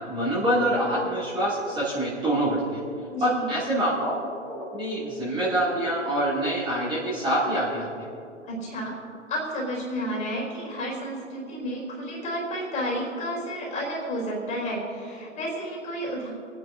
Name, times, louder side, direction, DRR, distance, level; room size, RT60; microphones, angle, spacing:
voice 1, 0.1-2.8 3.2-8.1, right 1 dB, 15° right, -8 dB, 2.6 m, -26 dB
voice 2, 3.1-3.5 8.5-9.0 9.3-16.3, equal, 20° left, -3 dB, 3.5 m, -31 dB
27.5 x 9.7 x 2.7 m, 2.6 s
figure-of-eight pair, 120°, 37 cm